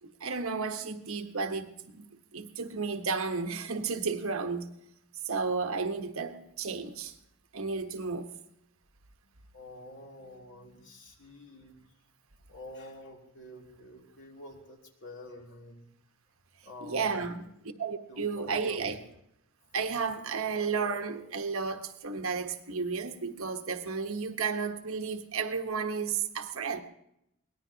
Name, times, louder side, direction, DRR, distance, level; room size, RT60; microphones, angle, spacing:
voice 1, 0.0-4.7 5.2-7.1 7.5-8.3 16.8-17.5 17.8-19.0 19.7-26.8, right 5 dB, 75° right, 1.2 m, -33 dB
voice 2, 9.5-11.8 12.5-15.9 16.6-17.3 17.7-19.0, left 1 dB, 60° left, 3.0 m, -48 dB
24.0 x 18.5 x 2.9 m
head